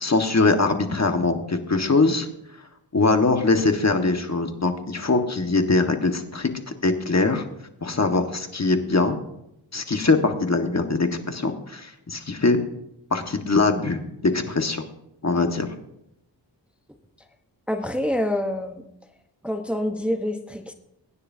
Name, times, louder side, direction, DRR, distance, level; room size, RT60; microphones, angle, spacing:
voice 1, 0.0-2.3 2.9-6.5 6.8-7.5 7.8-9.2 9.7-12.6 13.1-14.8 15.2-15.7, left 3 dB, 35° left, 5 dB, 1.6 m, -22 dB
voice 2, 17.7-18.8 19.4-20.7, left 1 dB, 5° right, 5 dB, 1.0 m, -26 dB
23.5 x 9.8 x 2.8 m, 0.82 s
cardioid pair, 60°, 44 cm